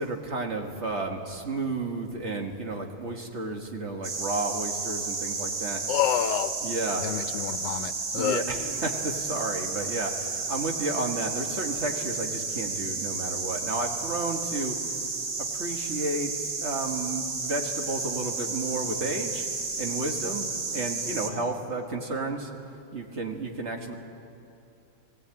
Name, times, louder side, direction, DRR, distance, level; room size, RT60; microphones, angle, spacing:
voice 1, 0.0-5.8 6.6-7.1 8.2-14.8 15.4-19.5 19.8-22.5 22.9-23.9, right 2 dB, 40° right, 3 dB, 1.8 m, -32 dB
sound 1, 4.0-21.3, right 4 dB, 65° right, 2.1 m, -32 dB
voice 2, 5.9-6.5 7.0-8.4, left 11 dB, 85° left, 11 dB, 1.5 m, -28 dB
18.5 x 18.0 x 8.9 m, 2.7 s
omnidirectional pair, 1.8 m